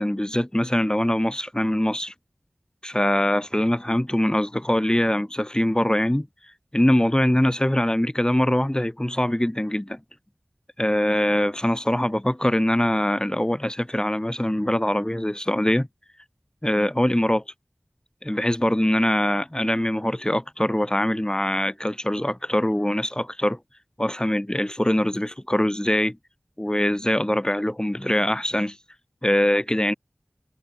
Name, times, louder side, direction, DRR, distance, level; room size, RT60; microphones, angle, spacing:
voice 1, 0.0-2.1 2.8-6.3 6.7-10.0 10.8-15.9 16.6-17.4 18.2-23.6 24.0-26.2 26.6-28.8 29.2-29.9, left 1 dB, 15° left, 6.7 m, -23 dB
wide cardioid pair, 45°, 5 cm